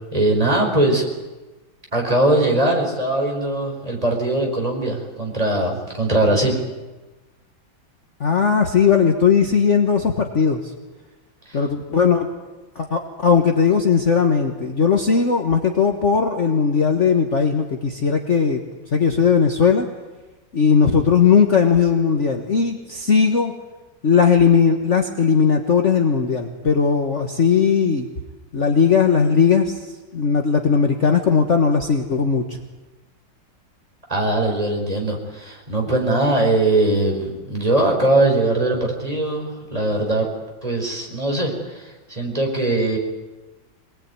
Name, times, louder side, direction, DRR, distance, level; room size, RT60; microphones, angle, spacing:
voice 1, 0.1-1.1 1.9-6.6 11.5-11.6 34.1-40.3 40.6-43.0, right 2 dB, 20° right, 0 dB, 4.9 m, -21 dB
voice 2, 8.2-10.7 11.5-12.3 12.7-18.6 18.9-19.9 20.5-23.5 24.0-28.1 28.5-29.8 30.1-32.4, left 6 dB, 40° left, 3 dB, 1.6 m, -18 dB
24.5 x 19.5 x 9.6 m, 1.2 s
omnidirectional pair, 2.1 m